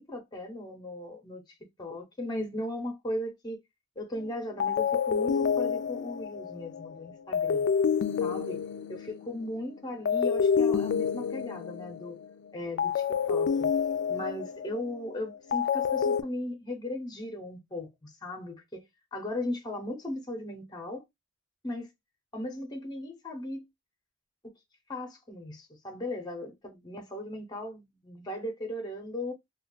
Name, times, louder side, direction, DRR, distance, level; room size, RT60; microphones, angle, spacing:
voice 1, 0.0-1.4 1.8-3.6 4.0-7.7 8.2-8.6 8.9-12.2 12.5-13.7 14.1-18.8 19.1-21.0 21.6-21.9 22.3-23.6 24.4-24.5 24.9-29.3, left 1 dB, 20° left, 0.7 m, -37 dB
sound 1, 4.1-4.3 4.6-9.5 10.1-12.3 12.8-16.2, left 6 dB, 60° left, 0.3 m, -28 dB
2.3 x 2.2 x 3.8 m
head